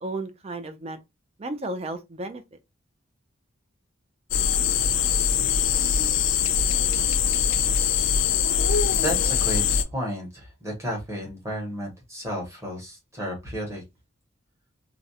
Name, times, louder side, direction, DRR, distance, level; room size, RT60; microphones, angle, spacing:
voice 1, 0.0-1.0 1.4-2.4, right 2 dB, 30° right, 0.3 m, -33 dB
sound 1, 4.3-9.8, left 7 dB, 65° left, 0.3 m, -22 dB
voice 2, 9.0-13.8, equal, 15° right, 0.9 m, -32 dB
2.4 x 2.0 x 2.7 m
head